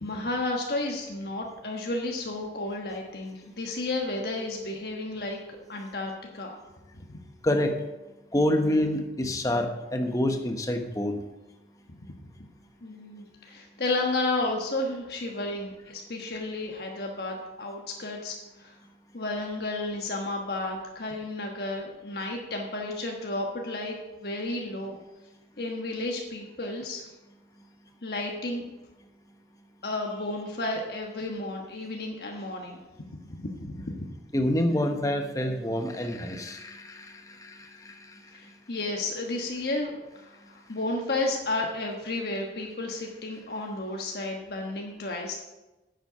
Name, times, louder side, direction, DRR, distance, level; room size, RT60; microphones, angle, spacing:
voice 1, 0.0-5.4 5.7-6.6 6.9-7.2 12.8-18.8 19.1-25.0 25.6-27.0 28.0-28.6 29.8-32.8 33.2-34.1 38.3-45.4, left 2 dB, 60° left, 0 dB, 1.3 m, -32 dB
voice 2, 7.4-7.7 8.3-11.2 34.3-38.1, left 1 dB, 20° left, 5 dB, 1.0 m, -27 dB
9.9 x 7.8 x 5.7 m, 1.0 s
head